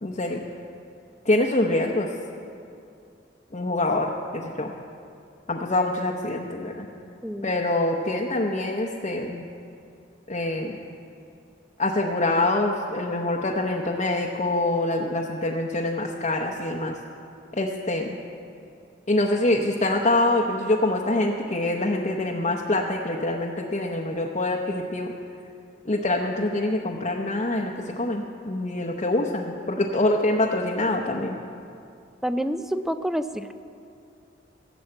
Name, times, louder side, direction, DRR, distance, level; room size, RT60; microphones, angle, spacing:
voice 1, 0.0-0.4 1.2-2.1 3.5-4.7 5.5-6.9 7.4-9.4 10.3-10.8 11.8-17.0 17.5-18.2 19.1-25.1 25.8-31.4, left 2 dB, 40° left, 0 dB, 0.8 m, -25 dB
voice 2, 7.2-7.5 32.2-33.6, equal, ahead, 10 dB, 0.4 m, -28 dB
16.5 x 7.2 x 7.7 m, 2.6 s
head